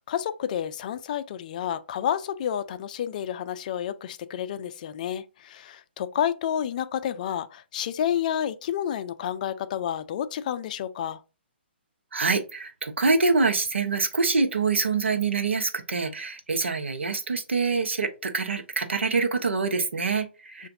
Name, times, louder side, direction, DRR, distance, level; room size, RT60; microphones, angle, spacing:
voice 1, 0.1-11.2 20.6-20.7, left 9 dB, 40° left, 0.4 m, -30 dB
voice 2, 12.1-20.7, right 4 dB, 90° right, 0.8 m, -25 dB
6.7 x 2.5 x 2.6 m
hypercardioid pair, 145°, 6 cm